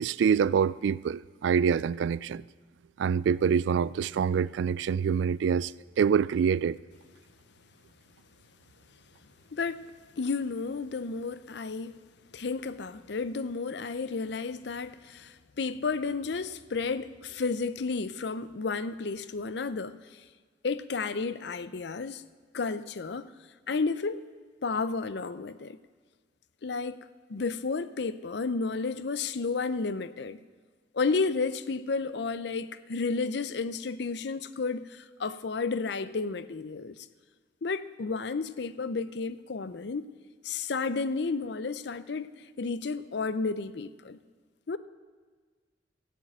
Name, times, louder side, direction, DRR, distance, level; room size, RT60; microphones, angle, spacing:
voice 1, 0.0-2.4 3.0-5.7 6.0-6.8, right 7 dB, 75° right, 0.3 m, -25 dB
voice 2, 9.5-9.8 10.2-11.9 12.3-20.2 20.6-22.2 22.5-23.3 23.7-24.2 24.6-25.8 26.6-27.0 27.3-30.4 30.9-37.0 37.6-40.0 40.4-42.3 42.6-44.2 44.7-44.8, left 4 dB, 65° left, 0.5 m, -32 dB
13.5 x 7.5 x 8.9 m
head